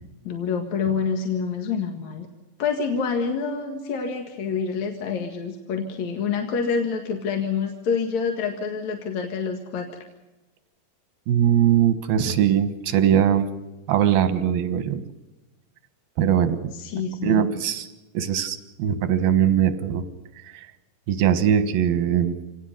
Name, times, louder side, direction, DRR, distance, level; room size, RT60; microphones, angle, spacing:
voice 1, 0.2-2.3 2.6-9.9 16.7-17.4, left 5 dB, 55° left, 3 dB, 2.7 m, -27 dB
voice 2, 11.3-13.5 13.9-15.0 16.2-16.7 17.2-17.9 18.1-20.1 20.4-20.7 21.1-22.4, right 9 dB, 90° right, 10 dB, 3.2 m, -21 dB
27.5 x 18.5 x 6.6 m, 1.1 s
omnidirectional pair, 4.1 m